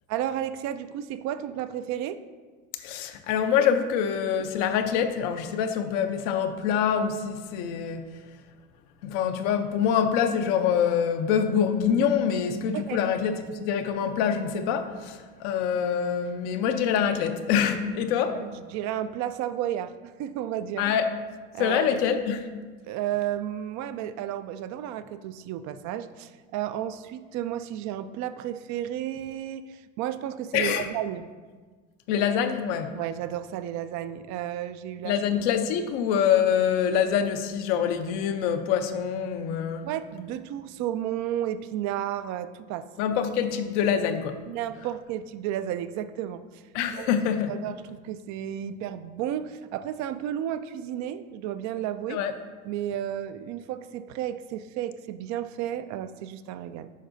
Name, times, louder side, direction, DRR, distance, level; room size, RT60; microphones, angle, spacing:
voice 1, 0.1-2.2 12.7-13.0 18.3-20.9 21.5-22.2 22.8-31.3 32.9-35.2 39.8-42.9 44.5-46.6 47.0-47.1 47.5-52.2 52.6-56.9, right 11 dB, 55° right, 12 dB, 0.4 m, -32 dB
voice 2, 2.8-8.0 9.0-18.4 20.8-21.1 21.6-22.5 30.5-30.9 32.1-33.0 35.0-39.9 43.0-44.4 46.7-47.5 52.1-52.3, left 8 dB, 70° left, 7 dB, 0.7 m, -25 dB
9.2 x 5.5 x 2.6 m, 1.4 s
supercardioid pair, 100°, 36 cm